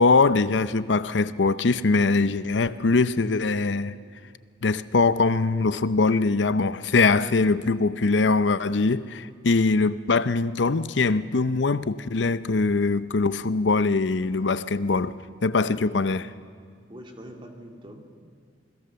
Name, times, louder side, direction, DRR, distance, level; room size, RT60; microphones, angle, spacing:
voice 1, 0.0-3.9 4.6-15.1 15.4-16.3, left 3 dB, 85° left, 0.7 m, -22 dB
voice 2, 16.9-18.2, equal, 30° right, 2.5 m, -44 dB
27.5 x 20.5 x 6.9 m
head